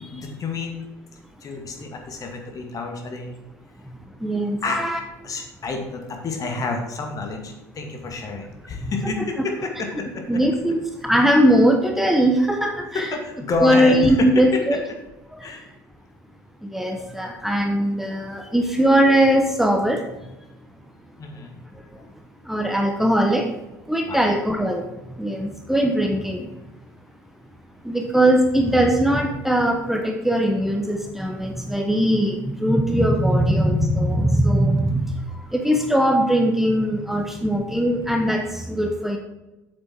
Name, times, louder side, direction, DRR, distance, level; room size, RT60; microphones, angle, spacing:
voice 1, 0.1-0.9 1.4-3.4 4.6-4.8 5.2-10.4 12.9-14.2 14.5-14.8 15.4-15.7 21.2-21.6 22.0-22.1 24.1-24.2 35.3-35.4, left 3 dB, 40° left, 3 dB, 2.2 m, -29 dB
voice 2, 4.2-5.0 9.0-9.1 10.3-10.8 11.0-13.1 13.6-14.8 16.7-20.0 22.5-23.5 23.9-24.8 25.2-26.5 27.8-35.1 35.5-39.2, right 1 dB, 5° right, 3 dB, 1.0 m, -20 dB
8.1 x 7.6 x 4.5 m, 1.0 s
figure-of-eight pair, 60°, 9 cm